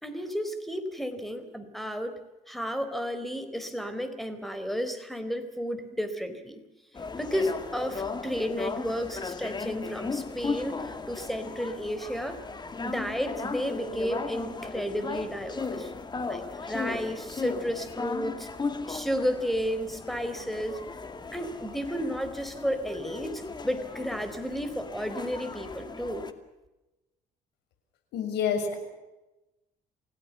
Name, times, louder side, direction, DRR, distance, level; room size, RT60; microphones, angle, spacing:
voice 1, 0.0-2.2 2.5-6.6 7.2-12.4 12.8-15.9 16.2-18.5 18.9-20.8 21.3-26.3, equal, ahead, 9 dB, 4.1 m, -32 dB
sound 1, 6.9-26.3, left 4 dB, 25° left, 2.3 m, -36 dB
voice 2, 28.1-28.7, left 7 dB, 85° left, 5 dB, 6.8 m, -27 dB
29.0 x 17.5 x 7.1 m, 1.0 s
cardioid pair, 110°, 17 cm